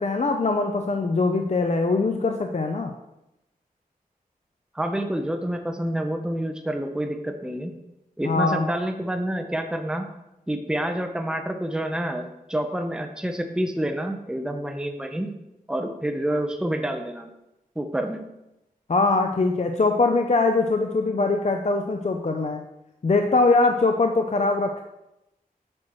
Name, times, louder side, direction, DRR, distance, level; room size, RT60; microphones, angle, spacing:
voice 1, 0.0-2.9 8.2-8.7 18.9-22.6 23.0-24.8, left 3 dB, 50° left, 4 dB, 0.6 m, -22 dB
voice 2, 4.7-7.7 8.2-10.1 10.5-15.3 15.7-17.3 17.8-18.2, right 1 dB, 5° right, 5 dB, 0.8 m, -28 dB
8.7 x 6.0 x 3.1 m, 0.91 s
wide cardioid pair, 50°, 15 cm